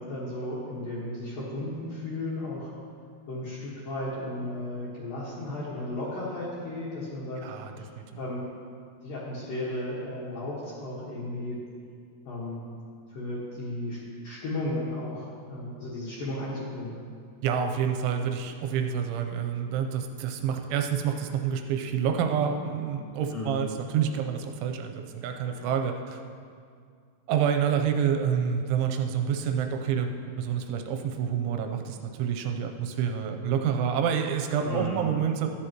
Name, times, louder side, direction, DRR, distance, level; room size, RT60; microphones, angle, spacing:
voice 1, 0.0-2.7 3.3-7.4 7.8-7.9 8.2-8.4 9.0-11.6 12.3-12.6 13.1-16.9 23.3-23.6 25.4-25.6 34.6-35.0, left 1 dB, 60° left, -8 dB, 2.7 m, -34 dB
voice 2, 7.4-8.0 17.4-26.2 27.3-30.1 30.4-35.5, right 8 dB, 85° right, 5 dB, 3.0 m, -28 dB
14.0 x 10.0 x 3.0 m, 2.2 s
omnidirectional pair, 5.5 m